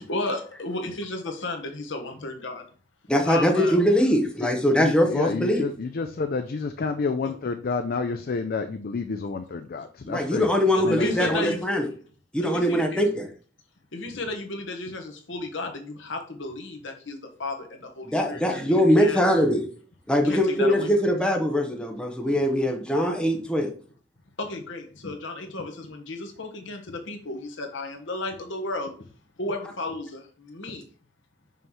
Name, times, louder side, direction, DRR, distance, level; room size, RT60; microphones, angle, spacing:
voice 1, 0.0-2.6 3.2-3.8 10.7-11.6 12.4-13.0 13.9-19.2 20.3-20.9 24.4-28.9 29.4-30.8, left 2 dB, 70° left, 3 dB, 1.2 m, -33 dB
voice 2, 3.1-5.7 10.0-11.9 12.3-13.3 18.0-19.7 20.1-23.7, equal, 5° left, 2 dB, 0.8 m, -22 dB
voice 3, 4.8-10.5 10.8-11.4, left 4 dB, 50° left, 8 dB, 0.4 m, -29 dB
5.5 x 3.1 x 5.6 m, 0.41 s
head